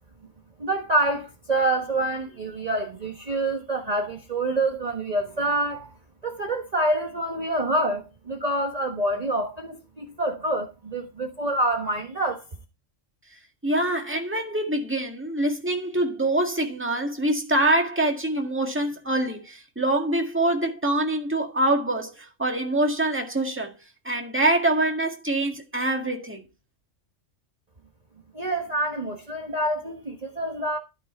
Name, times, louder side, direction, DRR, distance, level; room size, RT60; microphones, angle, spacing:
voice 1, 0.6-5.9 6.2-12.4 28.3-30.8, right 1 dB, 35° right, 1.3 m, -27 dB
voice 2, 13.6-23.7 24.1-26.4, right 1 dB, 10° right, 1.8 m, -25 dB
12.0 x 6.1 x 4.4 m
omnidirectional pair, 1.3 m